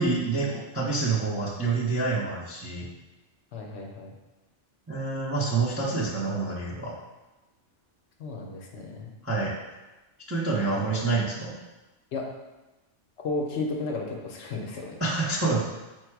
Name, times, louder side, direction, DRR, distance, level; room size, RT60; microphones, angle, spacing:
voice 1, 0.0-2.9 4.9-6.9 9.2-9.5 10.3-11.6 15.0-15.6, right 3 dB, 20° right, -6 dB, 0.4 m, -27 dB
voice 2, 3.5-4.1 8.2-9.1 10.6-10.8 12.1-12.3 13.2-15.0, left 3 dB, 70° left, 1 dB, 0.9 m, -33 dB
4.6 x 2.2 x 4.5 m, 1.1 s
omnidirectional pair, 1.2 m